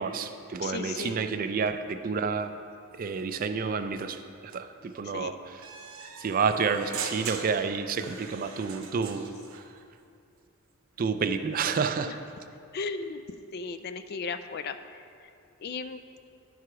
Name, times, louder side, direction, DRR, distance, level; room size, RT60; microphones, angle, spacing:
voice 1, 0.0-2.5 3.0-4.2 4.5-5.6 6.2-9.6 11.0-12.1, right 5 dB, 40° right, 9 dB, 0.3 m, -29 dB
voice 2, 0.6-1.2 5.0-5.3 12.0-12.2 12.7-13.2 13.5-14.8 15.6-16.0, left 4 dB, 45° left, 9 dB, 0.3 m, -35 dB
sound 1, 5.6-9.6, right 6 dB, 65° right, 0.8 m, -40 dB
11.0 x 4.8 x 4.7 m, 2.5 s
head